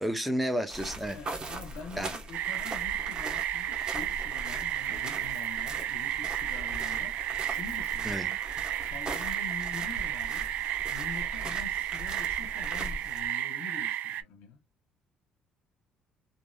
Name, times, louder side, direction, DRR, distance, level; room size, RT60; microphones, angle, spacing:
voice 1, 0.0-1.2 2.0-2.1 4.9-5.0 8.0-8.3, equal, ahead, 0.6 m, -31 dB
sound 1, 0.7-13.3, right 2 dB, 35° right, 1.1 m, -41 dB
voice 2, 1.1-8.4 8.8-10.5 10.9-14.6, left 6 dB, 80° left, 0.6 m, -45 dB
sound 2, 2.3-14.2, right 12 dB, 70° right, 0.3 m, -33 dB
3.0 x 2.6 x 2.2 m
cardioid pair, 90°, 3 cm